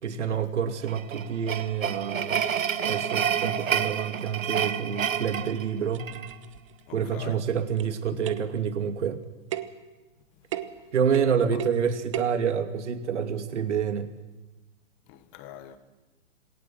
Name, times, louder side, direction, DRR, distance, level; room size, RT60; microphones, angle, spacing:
voice 1, 0.0-2.4 2.8-6.1 6.9-9.2 10.9-14.1, right 7 dB, 60° right, 2.8 m, -28 dB
sound 1, 0.8-6.3, right 8 dB, 85° right, 1.8 m, -29 dB
sound 2, 4.9-5.0 5.6-5.7 5.9-6.8 7.8-8.6 9.5-9.8 10.5-10.8 11.1-11.8 12.1-12.4, right 12 dB, 25° right, 1.0 m, -35 dB
voice 2, 6.9-7.4 8.1-8.2 11.5-11.6 15.1-15.8, left 12 dB, 15° left, 1.0 m, -44 dB
27.0 x 20.5 x 7.7 m
hypercardioid pair, 170°, 39 cm